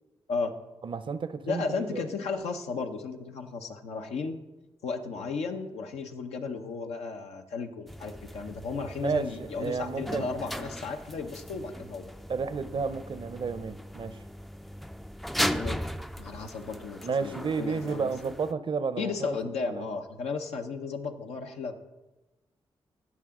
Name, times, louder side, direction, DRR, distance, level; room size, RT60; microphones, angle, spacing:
voice 1, 0.8-2.0 9.0-10.3 12.3-14.2 17.0-19.9, right 5 dB, 50° right, 13 dB, 0.6 m, -32 dB
voice 2, 1.5-4.4 4.8-12.1 15.5-15.8 16.2-18.1 19.0-21.8, left 4 dB, 85° left, 4 dB, 0.8 m, -34 dB
sound 1, 7.9-18.5, equal, ahead, 0.4 m, -37 dB
16.0 x 5.9 x 3.7 m, 1.1 s
supercardioid pair, 45°, 11 cm